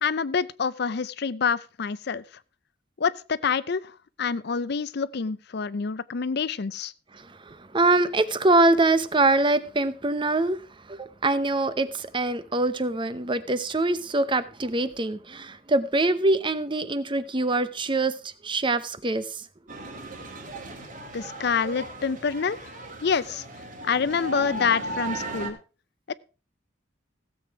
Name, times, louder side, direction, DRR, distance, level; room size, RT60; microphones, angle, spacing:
voice 1, 0.0-2.2 3.0-6.9 21.1-22.7 23.0-23.4 23.9-25.6 26.1-26.2, left 5 dB, 55° left, 0.5 m, -27 dB
voice 2, 7.2-10.6 10.9-19.4, right 2 dB, 25° right, 0.7 m, -24 dB
sound 1, 19.7-25.5, right 2 dB, 45° right, 2.7 m, -36 dB
16.0 x 7.8 x 4.7 m
head